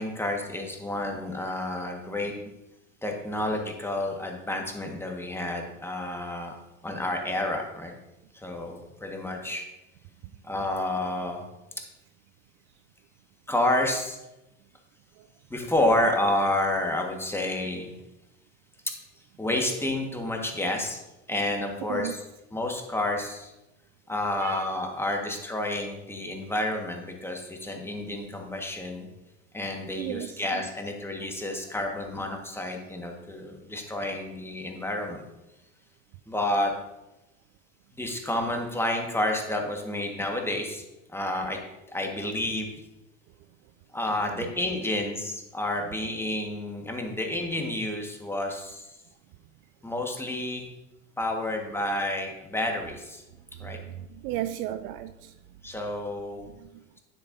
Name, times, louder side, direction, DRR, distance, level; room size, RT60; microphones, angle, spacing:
voice 1, 0.0-2.3 3.0-6.6 6.8-7.9 8.3-9.6 10.4-11.4 13.5-14.2 15.5-17.9 18.8-18.9 19.4-21.0 21.3-23.5 24.1-29.1 29.5-35.2 36.3-36.7 37.9-40.8 41.1-41.6 41.9-42.7 43.9-49.0 49.8-50.7 51.2-53.2 53.6-53.8 55.6-56.5, left 1 dB, 5° left, 2 dB, 1.5 m, -30 dB
voice 2, 30.0-30.6 44.4-44.5 53.5-55.4 56.4-56.8, right 13 dB, 50° right, 11 dB, 0.5 m, -35 dB
9.6 x 8.3 x 2.7 m, 0.98 s
hypercardioid pair, 80°, 38 cm